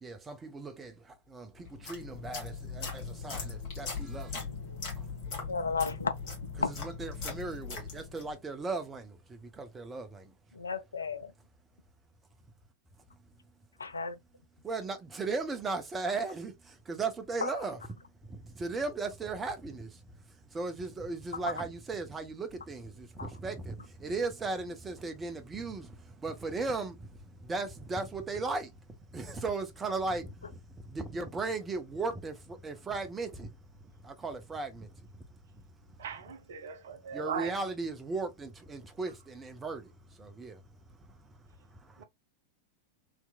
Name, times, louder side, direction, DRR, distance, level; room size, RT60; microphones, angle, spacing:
voice 1, 0.0-4.5 5.0-5.1 6.8-10.3 14.6-17.8 18.2-20.0 20.5-28.7 29.1-33.6 34.0-35.1 37.1-39.9 40.2-40.6 41.2-41.3 41.8-42.0, right 3 dB, 15° right, 0.8 m, -37 dB
sound 1, 1.6-8.4, left 5 dB, 45° left, 1.7 m, -40 dB
voice 2, 4.5-4.8 5.5-6.1 6.6-6.7 10.5-11.3 13.8-14.2 17.4-17.7 21.3-21.6 23.2-23.3, left 5 dB, 75° left, 0.4 m, -34 dB
voice 3, 36.0-37.5 42.0-42.1, right 7 dB, 60° right, 0.7 m, -38 dB
3.4 x 3.0 x 2.3 m
figure-of-eight pair, 90°, 0 cm